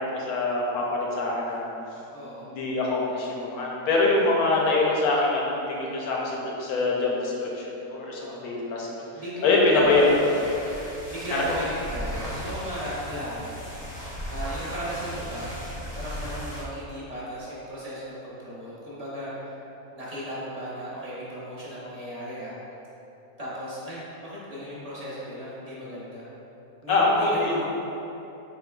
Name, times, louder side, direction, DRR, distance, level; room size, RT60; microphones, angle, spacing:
voice 1, 0.0-1.6 2.5-8.9 9.4-10.0 11.3-11.4 26.9-27.5, left 2 dB, 90° left, -3 dB, 1.2 m, -24 dB
voice 2, 2.1-2.5 8.2-8.5 9.1-10.6 11.1-19.6 19.9-22.6 23.4-26.3 26.8-27.7, equal, 35° right, -8 dB, 0.7 m, -36 dB
sound 1, 9.7-16.7, equal, 25° left, 0.6 m, -37 dB
4.3 x 3.8 x 2.2 m, 3.0 s
omnidirectional pair, 1.6 m